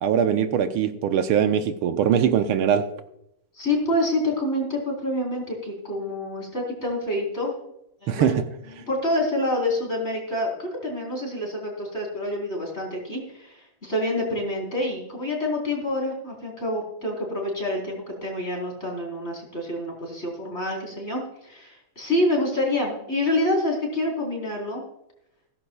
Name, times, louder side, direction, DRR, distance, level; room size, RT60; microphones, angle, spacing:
voice 1, 0.0-2.8 8.1-8.4, right 8 dB, 75° right, 1.6 m, -21 dB
voice 2, 3.5-7.5 8.0-8.3 8.6-24.8, left 1 dB, 30° left, 4.3 m, -27 dB
16.5 x 14.0 x 2.3 m
omnidirectional pair, 2.4 m